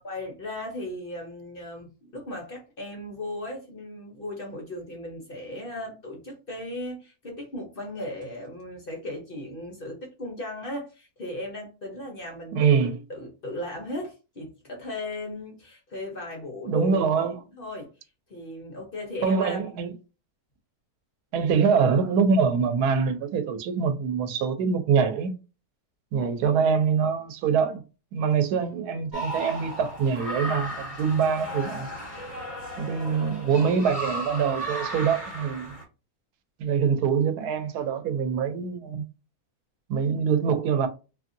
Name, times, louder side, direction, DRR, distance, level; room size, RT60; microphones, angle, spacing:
voice 1, 0.0-17.9 18.3-19.8 21.3-21.5 32.9-33.8, left 1 dB, 45° left, 0.8 m, -37 dB
voice 2, 12.5-13.0 16.6-17.3 19.2-19.9 21.3-25.3 26.1-27.8 28.1-31.9 32.8-35.7 36.6-39.0 39.9-40.9, right 6 dB, 90° right, 1.1 m, -24 dB
sound 1, 29.1-35.8, right 1 dB, 25° left, 1.7 m, -35 dB
2.7 x 2.6 x 2.6 m
omnidirectional pair, 1.6 m